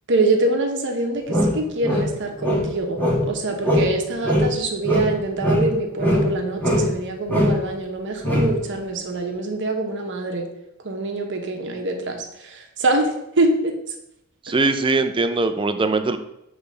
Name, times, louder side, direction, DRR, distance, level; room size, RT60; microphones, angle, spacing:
voice 1, 0.1-10.5 10.8-13.7, right 2 dB, 60° right, 3 dB, 1.1 m, -24 dB
sound 1, 1.3-3.4 3.6-4.0 4.2-6.3 6.6-7.0 7.3-7.6 8.2-8.6, equal, 10° left, 1.3 m, -21 dB
voice 2, 14.5-16.2, right 3 dB, 25° right, 8 dB, 0.5 m, -21 dB
7.9 x 3.4 x 5.4 m, 0.82 s
head